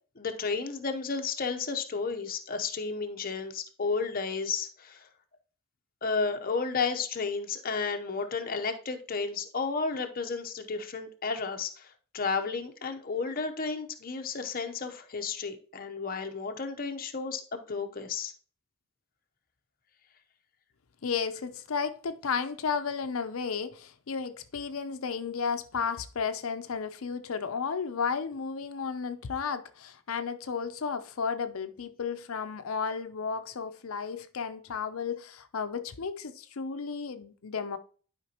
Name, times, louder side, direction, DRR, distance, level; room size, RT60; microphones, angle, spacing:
voice 1, 0.2-5.1 6.0-17.4 17.7-18.3, left 4 dB, 45° left, 0.8 m, -32 dB
voice 2, 21.0-37.8, left 5 dB, 75° left, 0.6 m, -33 dB
11.5 x 5.1 x 2.9 m
head